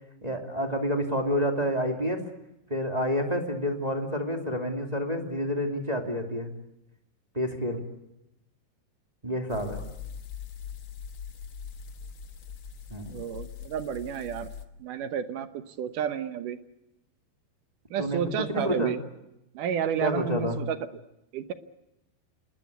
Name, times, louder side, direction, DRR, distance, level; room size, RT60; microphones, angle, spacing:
voice 1, 0.2-2.2 2.7-6.5 7.3-7.8 9.2-9.8 12.9-13.0 18.0-18.2 18.5-18.9 20.0-20.6, equal, 10° right, 2 dB, 2.1 m, -28 dB
sound 1, 9.5-14.6, left 7 dB, 80° left, 1.1 m, -42 dB
voice 2, 13.1-14.5 14.8-16.6 17.9-19.0 19.5-20.8 21.3-21.5, right 9 dB, 70° right, 10 dB, 2.2 m, -31 dB
27.5 x 20.5 x 8.2 m, 0.88 s
omnidirectional pair, 4.7 m